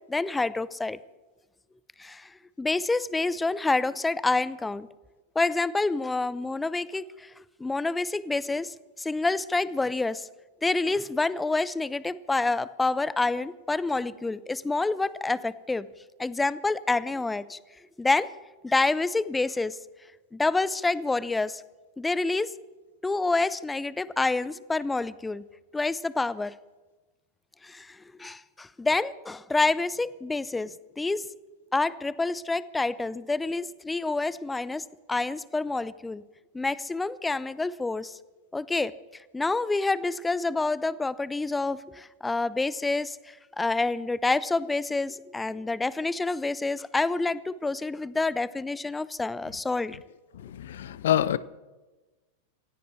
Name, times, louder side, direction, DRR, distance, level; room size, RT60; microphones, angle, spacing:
voice 1, 0.1-1.0 2.0-4.9 5.3-7.3 7.6-10.3 10.6-15.9 16.2-17.6 18.0-18.3 18.6-19.8 20.3-21.6 22.0-22.5 23.0-25.4 25.7-26.5 27.6-31.3 31.7-36.2 36.5-38.2 38.5-50.0, left 3 dB, 10° left, 0.6 m, -28 dB
voice 2, 50.3-51.4, left 11 dB, 60° left, 0.6 m, -26 dB
27.5 x 16.0 x 3.3 m
figure-of-eight pair, 90°, 0 cm